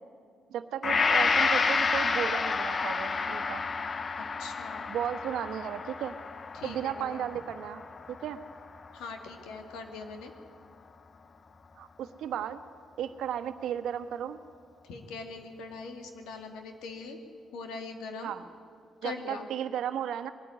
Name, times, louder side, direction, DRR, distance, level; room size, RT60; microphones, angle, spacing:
voice 1, 0.5-3.7 4.9-6.2 6.6-7.8 8.1-8.4 11.8-12.6 13.0-14.4 18.2-18.4 19.0-20.3, right 9 dB, 80° right, 9 dB, 1.2 m, -34 dB
Gong, 0.8-9.1 9.6-9.7, left 4 dB, 35° left, 0.8 m, -30 dB
voice 2, 4.4-4.9 6.5-7.3 8.9-10.3 14.8-17.2 17.5-18.3 19.0-19.5, left 4 dB, 90° left, 5 dB, 2.3 m, -41 dB
21.5 x 14.0 x 9.8 m, 2.1 s
cardioid pair, 90°, 0 cm